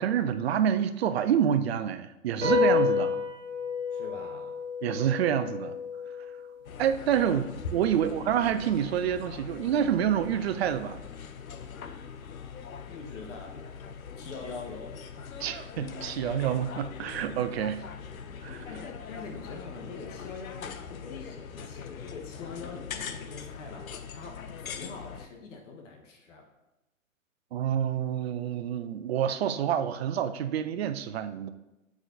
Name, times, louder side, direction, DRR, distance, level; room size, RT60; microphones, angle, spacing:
voice 1, 0.0-3.2 4.8-5.8 6.8-7.4 7.7-11.1 15.4-17.9 18.4-18.7 27.5-31.5, right 9 dB, 50° right, 11 dB, 0.5 m, -27 dB
sound 1, 2.4-9.1, left 5 dB, 20° right, 1.6 m, -31 dB
voice 2, 3.9-4.6 7.1-7.4 7.9-8.1 12.9-13.6 14.2-14.9 18.6-26.5, left 4 dB, 60° left, 1 dB, 1.2 m, -44 dB
sound 2, 6.6-25.3, left 6 dB, 80° left, 0.6 m, -42 dB
7.8 x 4.8 x 2.6 m, 0.96 s
figure-of-eight pair, 120°, 41 cm